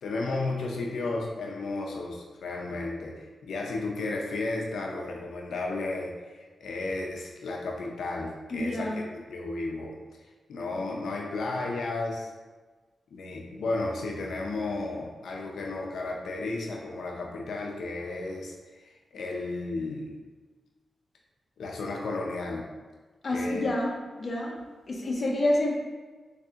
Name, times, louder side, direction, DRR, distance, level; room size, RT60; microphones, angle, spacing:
voice 1, 0.0-9.9 10.5-12.3 13.1-20.1 21.6-22.7 23.3-23.7, left 2 dB, 90° left, -1 dB, 0.5 m, -33 dB
voice 2, 8.5-9.0 23.2-24.6 24.9-25.7, left 1 dB, 35° left, -2 dB, 0.6 m, -28 dB
3.5 x 3.2 x 2.7 m, 1.3 s
wide cardioid pair, 170°, 0 cm